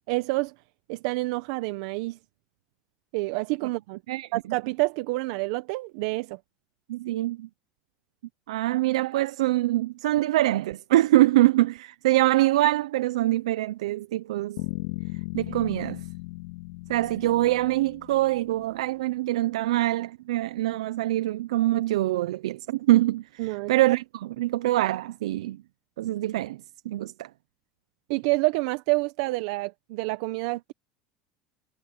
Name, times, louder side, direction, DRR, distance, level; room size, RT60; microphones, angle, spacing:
voice 1, 0.1-0.5 0.9-2.2 3.1-4.0 4.3-6.4 23.4-23.7 28.1-30.7, right 24 dB, 75° right, 0.9 m, -28 dB
voice 2, 6.9-7.5 8.5-14.6 15.3-16.0 16.9-25.6 26.0-26.6 26.8-27.3, right 16 dB, 90° right, 0.6 m, -24 dB
sound 1, 14.6-18.6, left 20 dB, 80° left, 1.9 m, -37 dB
supercardioid pair, 100°, 3 cm